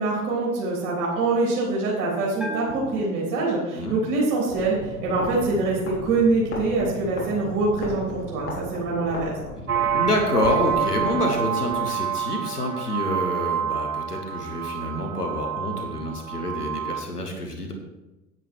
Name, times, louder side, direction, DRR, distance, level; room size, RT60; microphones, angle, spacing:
voice 1, 0.0-9.3, right 3 dB, 45° right, -4 dB, 3.5 m, -24 dB
Bell, 2.4-4.0, right 2 dB, ahead, 1.8 m, -37 dB
sound 1, 4.4-11.8, left 1 dB, 30° left, 3.3 m, -36 dB
sound 2, 9.7-17.0, right 7 dB, 70° right, 1.0 m, -28 dB
voice 2, 9.9-17.7, left 1 dB, 85° left, 3 dB, 1.7 m, -27 dB
9.8 x 9.2 x 4.6 m, 1.0 s
figure-of-eight pair, 80°, 45 cm